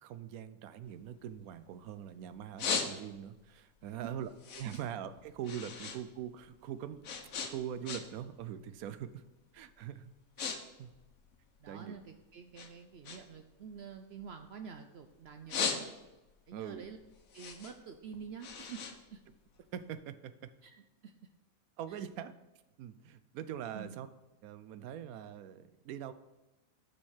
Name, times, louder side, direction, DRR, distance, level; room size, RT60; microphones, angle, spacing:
voice 1, 0.0-7.0 7.4-9.2 9.5-10.1 10.4-10.9 11.7-11.9 16.5-16.9 19.7-20.5 21.8-22.3 22.8-24.1 24.4-26.1, right 9 dB, 80° right, 13 dB, 1.0 m, -43 dB
sound 1, 0.8-2.0 2.3-3.4 3.8-6.0 6.3-8.3 8.6-9.0 9.6-9.7 10.0-10.6 10.8-12.1 12.5-14.9 15.3-16.3 16.7-19.8, left 6 dB, 70° left, 1.3 m, -38 dB
voice 2, 11.6-15.9 16.5-17.0 17.3-19.2 20.6-21.1 21.9-22.0 23.7-24.0, right 6 dB, 65° right, 6 dB, 0.6 m, -48 dB
6.8 x 5.2 x 6.4 m, 1.0 s
omnidirectional pair, 1.5 m